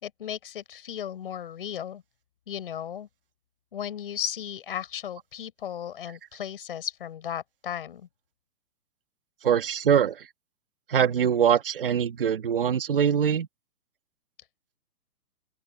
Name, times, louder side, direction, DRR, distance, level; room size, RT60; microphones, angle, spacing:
voice 1, 0.0-2.0 2.5-3.1 3.7-8.1, left 9 dB, 35° left, 6.5 m, -35 dB
voice 2, 9.4-10.3 10.9-13.5, right 8 dB, 35° right, 1.8 m, -23 dB
open air
hypercardioid pair, 180°, 44 cm